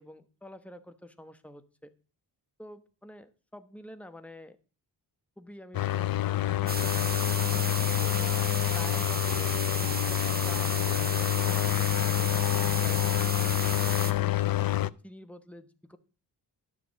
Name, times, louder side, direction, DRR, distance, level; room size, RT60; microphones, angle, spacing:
voice 1, 0.0-1.9 2.6-4.6 5.4-8.3 8.7-12.4 12.8-16.0, left 1 dB, 5° left, 8 dB, 1.1 m, -48 dB
sound 1, 5.7-14.9, left 15 dB, 55° left, 0.5 m, -27 dB
sound 2, 6.7-14.1, right 3 dB, 20° right, 1.1 m, -34 dB
11.5 x 6.8 x 6.3 m, 0.37 s
wide cardioid pair, 100°, 42 cm